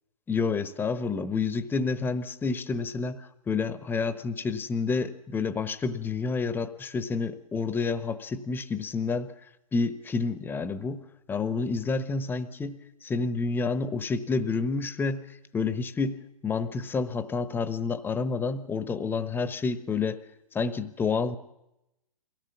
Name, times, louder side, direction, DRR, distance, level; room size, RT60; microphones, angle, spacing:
voice 1, 0.3-9.3 9.7-11.0 11.3-20.2 20.5-21.4, left 4 dB, 10° left, 12 dB, 1.1 m, -29 dB
23.0 x 17.0 x 7.2 m, 0.90 s
hypercardioid pair, 125°, 19 cm